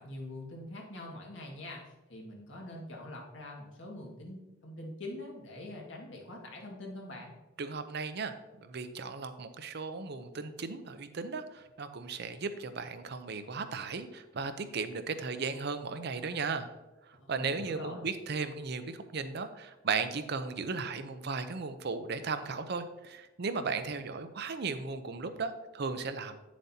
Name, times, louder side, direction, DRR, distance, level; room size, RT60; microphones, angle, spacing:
voice 1, 0.0-7.3 17.2-18.0, left 1 dB, 80° left, -1 dB, 1.8 m, -44 dB
voice 2, 7.6-16.7 17.3-26.4, right 4 dB, 60° right, 9 dB, 0.6 m, -36 dB
8.6 x 7.3 x 2.8 m, 1.1 s
head